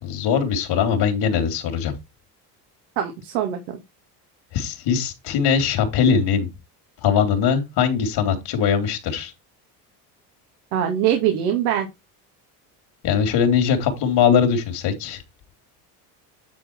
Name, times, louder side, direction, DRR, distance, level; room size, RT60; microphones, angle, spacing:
voice 1, 0.0-1.9 4.5-6.5 7.0-9.3 13.0-15.2, left 7 dB, 60° left, 3.1 m, -21 dB
voice 2, 3.0-3.6 10.7-11.9, right 10 dB, 85° right, 2.2 m, -22 dB
10.0 x 4.4 x 4.5 m
supercardioid pair, 100°, 44 cm